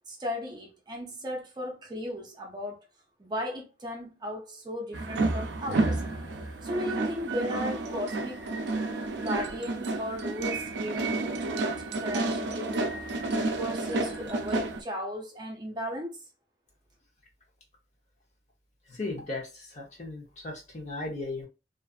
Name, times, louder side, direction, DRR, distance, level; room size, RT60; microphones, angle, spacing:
voice 1, 0.1-2.8 3.2-6.0 6.6-12.9 13.2-16.2, equal, 25° right, 0.5 m, -36 dB
sound 1, 4.9-14.8, right 2 dB, 75° right, 0.4 m, -30 dB
voice 2, 18.9-21.5, left 2 dB, 40° left, 0.8 m, -36 dB
2.5 x 2.4 x 2.4 m
head